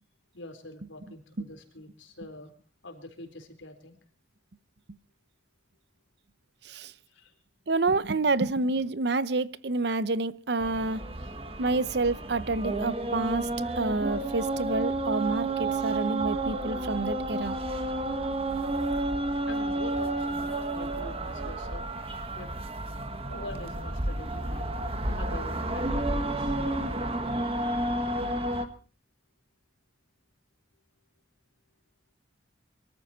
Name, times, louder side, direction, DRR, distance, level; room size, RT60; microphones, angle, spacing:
voice 1, 0.3-2.5 2.8-4.0 7.1-7.3 19.5-21.8 22.3-22.5 23.3-26.6 27.6-27.7, left 1 dB, 85° left, 4.1 m, -44 dB
voice 2, 7.7-11.0 11.6-17.6, right 3 dB, 60° right, 0.8 m, -28 dB
sound 1, 10.6-28.7, right 2 dB, 30° right, 1.6 m, -31 dB
23.5 x 14.0 x 4.4 m
head